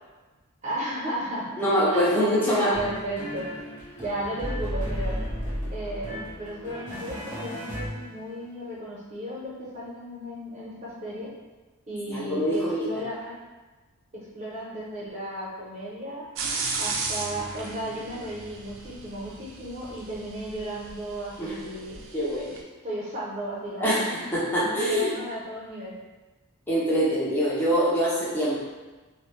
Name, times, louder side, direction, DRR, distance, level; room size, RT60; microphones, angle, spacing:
voice 1, 0.6-1.5 1.9-3.5 4.0-5.2 5.7-11.3 11.9-13.4 14.1-16.2 16.8-22.0 22.8-24.3 24.6-26.0, right 1 dB, 30° right, -7 dB, 0.7 m, -34 dB
voice 2, 1.6-2.7 12.1-12.8 21.4-21.5 22.1-22.6 23.8-25.1 26.7-28.6, equal, 10° left, -8 dB, 0.5 m, -24 dB
sound 1, 2.7-8.5, equal, 35° left, 0.8 m, -34 dB
sound 2, 16.4-22.6, right 4 dB, 60° right, 0.3 m, -35 dB
2.2 x 2.0 x 3.1 m, 1.2 s
head